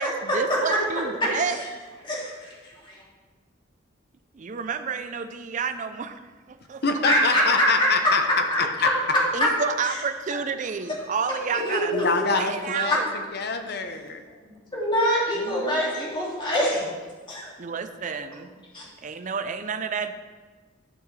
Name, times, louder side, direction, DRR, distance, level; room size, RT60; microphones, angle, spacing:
voice 1, 0.0-1.6 4.3-6.2 6.5-6.8 9.3-11.9 12.3-13.0 15.3-15.9 17.6-18.5 19.0-20.1, right 5 dB, 40° right, 9 dB, 0.4 m, -30 dB
voice 2, 2.0-3.0 7.1-7.9 8.5-8.6 10.9-11.1 11.5-12.1 12.9-13.0 14.7-16.9 17.3-17.5 18.7-18.9, equal, 25° left, -5 dB, 2.2 m, -25 dB
voice 3, 6.8-8.2 11.9-13.0 13.3-14.2, left 4 dB, 55° left, 6 dB, 0.8 m, -25 dB
12.0 x 5.8 x 3.2 m, 1.4 s
head